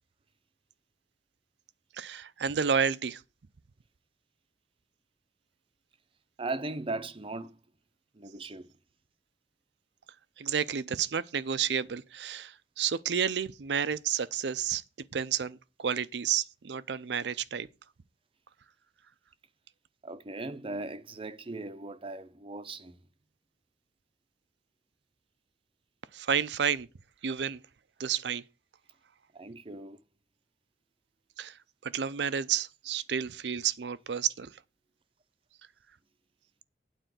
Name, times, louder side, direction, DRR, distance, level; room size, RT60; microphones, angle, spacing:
voice 1, 1.9-3.2 10.4-14.8 15.1-17.7 26.1-26.9 27.2-27.6 28.0-28.4 31.4-34.5, right 7 dB, 70° right, 0.5 m, -31 dB
voice 2, 6.4-7.6 8.2-8.7 20.0-23.0 29.3-30.0, right 2 dB, 30° right, 0.6 m, -38 dB
9.2 x 4.3 x 7.5 m
head